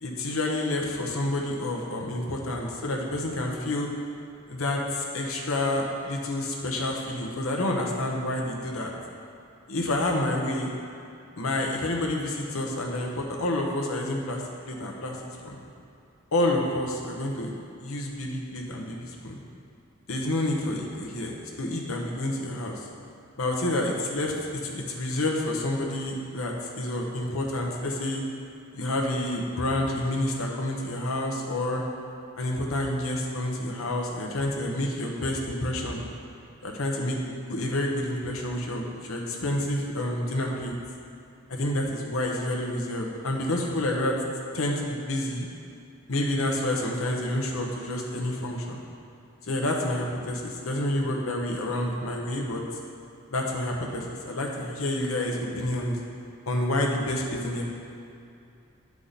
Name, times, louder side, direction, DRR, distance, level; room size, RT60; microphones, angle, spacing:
voice 1, 0.0-3.9 4.5-8.9 9.7-10.7 11.4-15.2 15.4-15.6 16.3-17.5 17.8-19.4 20.1-22.8 23.4-28.2 28.7-31.8 32.4-36.0 36.6-40.7 41.5-44.2 44.5-45.5 46.1-48.8 49.5-52.6 53.3-56.0 56.5-57.6, left 1 dB, 80° left, 0 dB, 1.1 m, -29 dB
11.0 x 4.8 x 4.1 m, 2.5 s
head